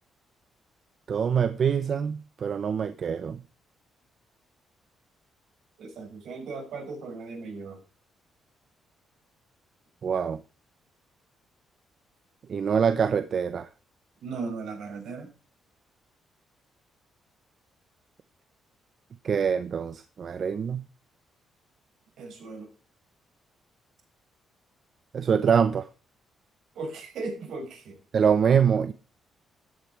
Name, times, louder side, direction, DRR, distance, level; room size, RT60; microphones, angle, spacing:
voice 1, 1.1-3.4 10.0-10.4 12.5-13.7 19.2-20.8 25.1-25.9 28.1-28.9, right 7 dB, 50° right, 0.8 m, -24 dB
voice 2, 5.8-7.8 14.2-15.3 22.2-22.7 26.7-28.0, right 3 dB, 75° right, 6.1 m, -37 dB
13.5 x 8.4 x 4.5 m
cardioid pair, 90°, 0 cm